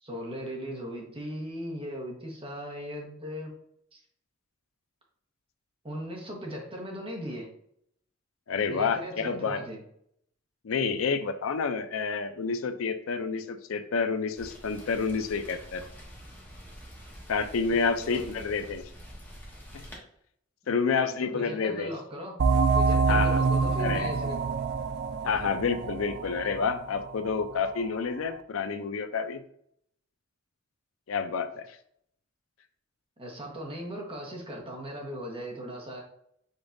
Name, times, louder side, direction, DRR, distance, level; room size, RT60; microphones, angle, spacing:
voice 1, 0.0-3.5 3.9-4.0 5.8-7.5 8.7-9.8 17.7-18.3 20.8-22.4 22.7-24.4 33.2-36.0, equal, 30° right, -1 dB, 1.2 m, -38 dB
voice 2, 8.5-9.6 10.6-15.8 17.3-18.8 20.7-21.9 23.1-23.4 23.8-24.1 25.2-29.4 31.1-31.7, left 5 dB, 85° left, 10 dB, 0.5 m, -29 dB
Rain, 14.4-20.0, equal, 10° left, 1.2 m, -47 dB
sound 1, 22.4-27.7, right 4 dB, 55° right, 0.4 m, -26 dB
5.2 x 3.9 x 2.6 m, 0.70 s
head